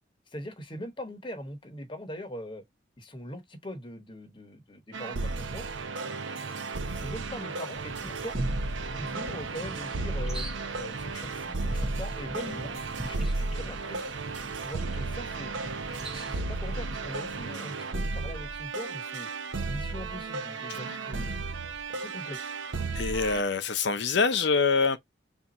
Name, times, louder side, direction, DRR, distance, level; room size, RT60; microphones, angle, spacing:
voice 1, 0.3-2.6 3.0-5.7 6.3-6.5 6.9-8.4 8.9-10.4 10.7-12.8 13.0-14.1 14.6-15.5 15.9-19.3 19.7-21.4 21.9-22.5, equal, 25° left, 0.9 m, -41 dB
sound 1, 4.9-23.4, right 3 dB, 75° right, 0.6 m, -34 dB
sound 2, 7.7-17.5, right 1 dB, 5° right, 0.7 m, -42 dB
voice 2, 22.9-25.0, left 4 dB, 65° left, 0.7 m, -25 dB
3.5 x 2.6 x 4.1 m
head